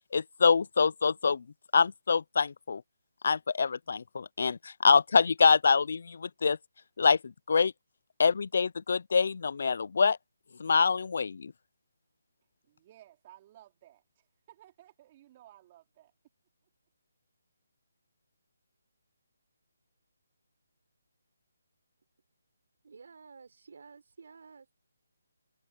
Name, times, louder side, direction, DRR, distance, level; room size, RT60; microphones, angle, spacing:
voice 1, 0.1-1.4 1.7-2.8 3.2-6.6 7.0-7.7 8.2-10.2 10.6-11.5, left 5 dB, 55° left, 0.4 m, -25 dB
voice 2, 12.6-16.1, right 13 dB, 25° right, 4.5 m, -57 dB
voice 3, 22.8-24.7, right 5 dB, 60° right, 4.0 m, -52 dB
hypercardioid pair, 170°, 0 cm